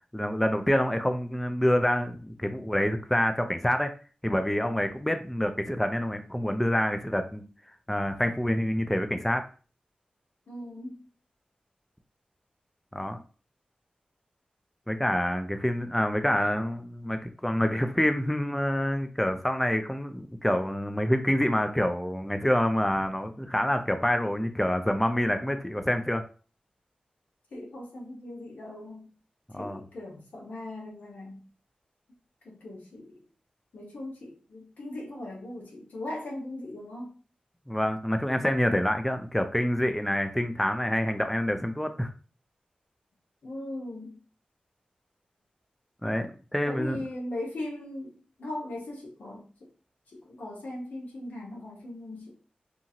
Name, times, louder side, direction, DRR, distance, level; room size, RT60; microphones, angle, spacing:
voice 1, 0.1-3.9 4.2-7.4 7.9-9.4 12.9-13.2 14.9-26.2 29.5-29.8 37.7-42.1 46.0-47.0, equal, 5° left, 7 dB, 0.3 m, -27 dB
voice 2, 10.5-11.1 27.5-29.1 29.6-31.4 32.4-33.2 33.7-37.1 43.4-44.2 46.6-49.4 50.1-52.3, left 1 dB, 85° left, -2 dB, 0.9 m, -39 dB
2.8 x 2.4 x 2.7 m, 0.37 s
cardioid pair, 55°, 3 cm